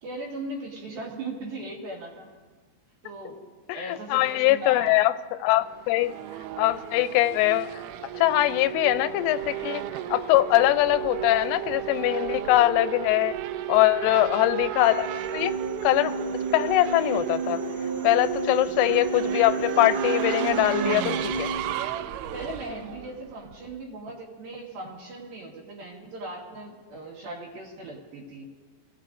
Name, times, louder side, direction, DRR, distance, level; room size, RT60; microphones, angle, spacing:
voice 1, 0.0-2.3 3.0-3.4 3.7-5.0 14.0-14.4 22.3-28.5, right 2 dB, 60° right, -1 dB, 2.9 m, -38 dB
voice 2, 3.7-5.1 5.4-6.1 6.6-9.8 10.1-13.3 13.7-15.5 15.8-16.1 16.5-17.6 18.0-21.5, left 15 dB, 90° left, 12 dB, 3.1 m, -22 dB
Race car auto racing / Accelerating revving vroom, 5.6-23.8, right 12 dB, 85° right, 3.0 m, -33 dB
sound 1, 14.8-21.5, right 3 dB, 25° right, 3.1 m, -33 dB
27.5 x 17.5 x 2.6 m, 1.4 s
omnidirectional pair, 5.5 m